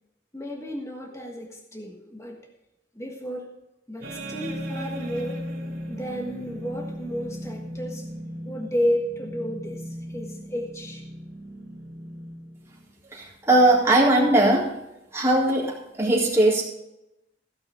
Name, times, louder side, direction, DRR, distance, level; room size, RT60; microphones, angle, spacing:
voice 1, 0.3-2.4 2.9-3.5 3.9-5.4 5.9-8.0 8.4-11.0, equal, 15° left, 1 dB, 1.5 m, -32 dB
sound 1, 4.0-12.9, equal, 55° right, 2.6 m, -37 dB
voice 2, 13.1-14.7 15.1-16.6, right 1 dB, 15° right, -5 dB, 4.0 m, -19 dB
16.0 x 6.1 x 6.2 m, 0.88 s
head